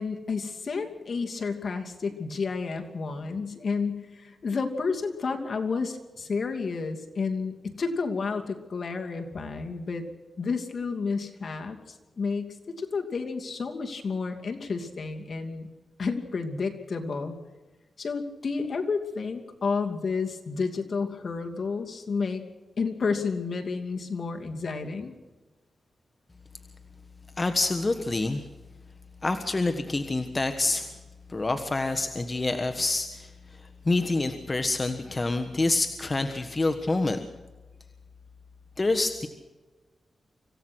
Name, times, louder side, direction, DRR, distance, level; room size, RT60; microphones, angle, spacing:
voice 1, 0.0-10.0 10.4-11.8 12.2-15.7 16.0-17.4 18.0-22.4 22.8-25.1, left 4 dB, 60° left, 4 dB, 2.7 m, -31 dB
voice 2, 27.4-28.4 29.2-30.9 31.3-37.2 38.8-39.3, left 2 dB, 30° left, 7 dB, 1.4 m, -27 dB
26.0 x 16.0 x 6.3 m, 1.2 s
cardioid pair, 75°, 0 cm